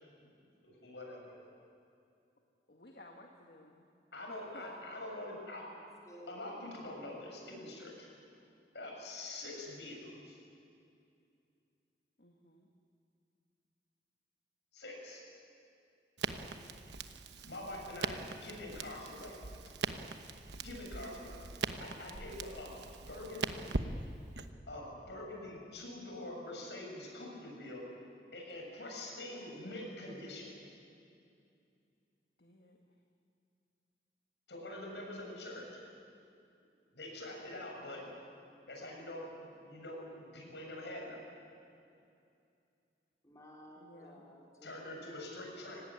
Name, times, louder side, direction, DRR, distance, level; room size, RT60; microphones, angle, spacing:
voice 1, 0.6-1.4 4.1-5.6 6.3-8.1 8.7-10.4 14.7-15.2 17.4-19.4 20.6-21.3 21.8-23.7 24.7-27.8 28.3-30.5 34.5-35.8 36.9-38.0 38.7-41.2 44.6-45.8, left 1 dB, 85° left, 0 dB, 7.4 m, -45 dB
voice 2, 2.7-3.9 4.3-4.8 12.2-12.7 18.1-18.3 21.8-22.4 32.4-32.8 37.7-38.3 43.8-44.2, left 1 dB, 60° left, 1 dB, 1.9 m, -57 dB
voice 3, 5.8-6.4 16.2-16.8 40.6-41.0 41.9-42.0 43.2-45.0, equal, 20° left, -3 dB, 4.1 m, -57 dB
Crackle, 16.2-24.5, right 4 dB, 85° right, 1.1 m, -41 dB
25.0 x 18.0 x 9.9 m, 2.5 s
head